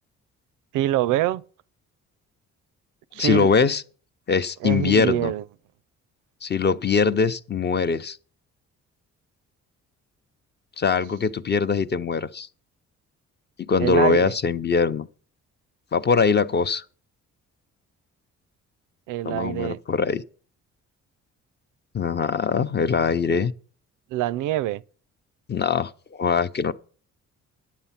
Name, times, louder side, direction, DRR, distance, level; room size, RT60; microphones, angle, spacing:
voice 1, 0.7-1.4 3.1-3.5 4.6-5.4 13.8-14.4 19.1-19.8 23.4-23.5 24.1-24.8, right 14 dB, 90° right, 0.5 m, -25 dB
voice 2, 3.2-3.8 4.3-5.3 6.4-8.2 10.8-12.5 13.6-15.1 15.9-16.8 19.2-20.2 21.9-23.5 25.5-26.7, left 5 dB, 35° left, 0.7 m, -22 dB
10.5 x 8.2 x 5.7 m
cardioid pair, 90°, 30 cm